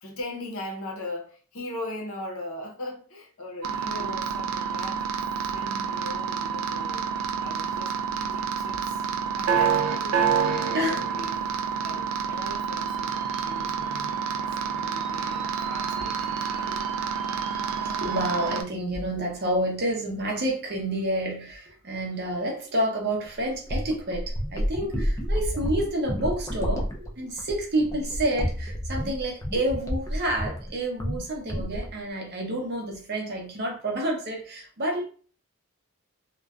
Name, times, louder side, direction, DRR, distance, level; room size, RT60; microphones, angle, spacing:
voice 1, 0.0-5.2 5.5-7.1 7.4-16.7, left 2 dB, 65° left, 0.7 m, -39 dB
sound 1, 3.6-18.6, right 7 dB, 65° right, 0.3 m, -28 dB
voice 2, 10.7-11.0 12.3-12.4 13.6-13.8 14.5-16.8 17.8-35.0, right 1 dB, 50° right, 0.7 m, -30 dB
sound 2, 23.2-30.7 31.0-31.2 31.5-32.0, equal, 15° left, 0.3 m, -30 dB
2.5 x 2.2 x 2.3 m
head